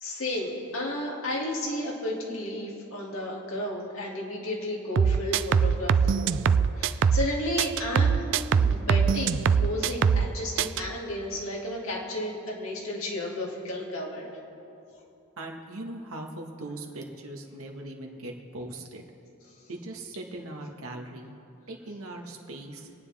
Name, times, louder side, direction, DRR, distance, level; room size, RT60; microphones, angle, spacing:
voice 1, 0.0-6.4 6.7-8.3 8.5-14.3, left 1 dB, 70° left, -3 dB, 2.6 m, -33 dB
sound 1, 5.0-7.3 7.6-10.3 10.6-10.8, right 6 dB, 55° right, 0.3 m, -22 dB
voice 2, 15.4-19.0 19.7-21.3 21.7-22.9, right 1 dB, 80° right, 2 dB, 1.7 m, -40 dB
26.5 x 9.5 x 3.6 m, 2.8 s
head